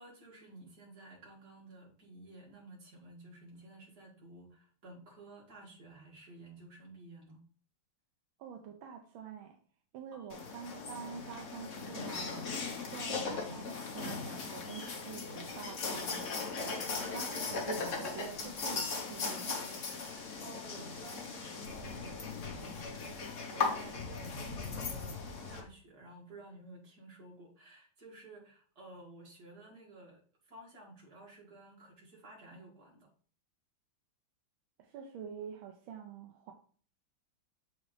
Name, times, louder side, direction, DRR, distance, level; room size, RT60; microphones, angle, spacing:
voice 1, 0.0-7.4 10.1-10.4 20.0-33.1, right 2 dB, 50° right, -3 dB, 2.7 m, -53 dB
voice 2, 8.4-9.6 9.9-12.4 12.9-19.7 34.8-36.5, right 7 dB, 80° right, 3 dB, 1.5 m, -47 dB
sound 1, 10.3-25.6, left 4 dB, 45° left, 1.2 m, -38 dB
6.9 x 5.0 x 3.2 m, 0.43 s
omnidirectional pair, 2.2 m